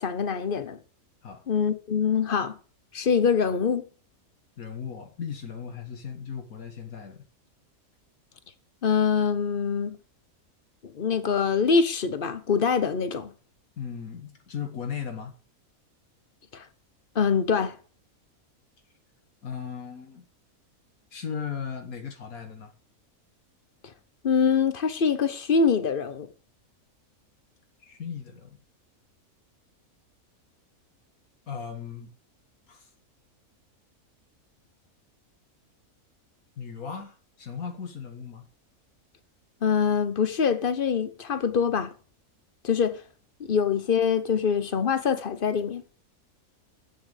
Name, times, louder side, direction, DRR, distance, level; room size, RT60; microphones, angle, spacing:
voice 1, 0.0-0.8 1.5-2.5 2.9-3.8 8.8-10.0 10.9-13.3 16.5-16.6 17.1-17.7 24.2-26.3 39.6-41.9 42.6-43.0 43.5-45.8, left 6 dB, 40° left, 1.1 m, -24 dB
voice 2, 4.6-7.2 13.8-15.3 19.4-20.3 21.1-22.7 27.8-28.6 31.5-32.1 32.7-32.9 36.6-38.4, left 7 dB, 75° left, 1.8 m, -37 dB
8.6 x 6.9 x 6.6 m
omnidirectional pair, 1.5 m